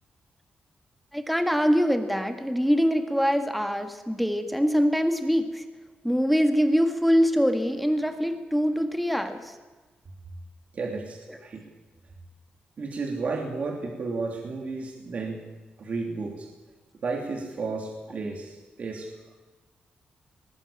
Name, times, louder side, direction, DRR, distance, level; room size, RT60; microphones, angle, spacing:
voice 1, 1.1-5.6 6.0-9.5, equal, ahead, 6 dB, 1.7 m, -24 dB
voice 2, 10.7-11.6 12.8-15.5 15.8-16.5 17.0-19.1, right 3 dB, 45° right, 1 dB, 3.0 m, -32 dB
19.5 x 18.5 x 8.7 m, 1.2 s
wide cardioid pair, 140°, 3 cm